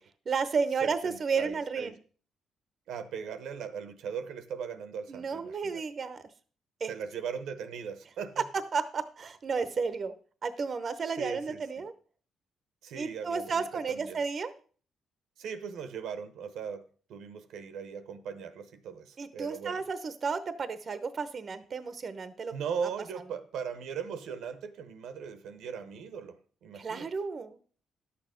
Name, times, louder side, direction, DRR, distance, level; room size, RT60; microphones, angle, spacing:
voice 1, 0.3-2.0 5.1-6.3 6.8-6.9 8.7-10.1 10.4-11.9 13.0-14.5 19.2-22.5 26.7-27.6, right 5 dB, 45° right, 12 dB, 0.8 m, -32 dB
voice 2, 0.8-1.9 2.9-5.8 6.9-8.4 11.2-11.6 12.8-14.2 15.4-16.8 17.1-19.8 22.5-27.1, right 7 dB, 80° right, 11 dB, 0.9 m, -39 dB
11.0 x 6.9 x 5.1 m, 0.43 s
cardioid pair, 90°, 0 cm